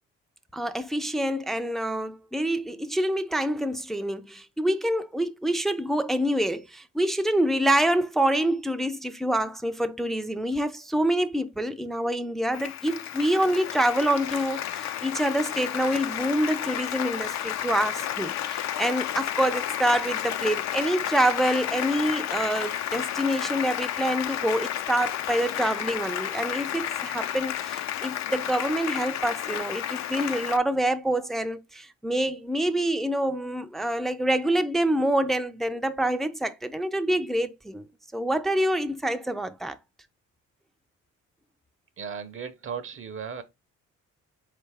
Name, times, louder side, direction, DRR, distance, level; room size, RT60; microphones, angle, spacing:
voice 1, 0.5-37.9 38.1-39.8, right 1 dB, ahead, 0.3 m, -26 dB
Applause, 12.5-30.6, left 11 dB, 65° left, 0.5 m, -31 dB
voice 2, 42.0-43.4, right 6 dB, 45° right, 0.6 m, -36 dB
4.1 x 3.3 x 3.3 m
cardioid pair, 90°, 30 cm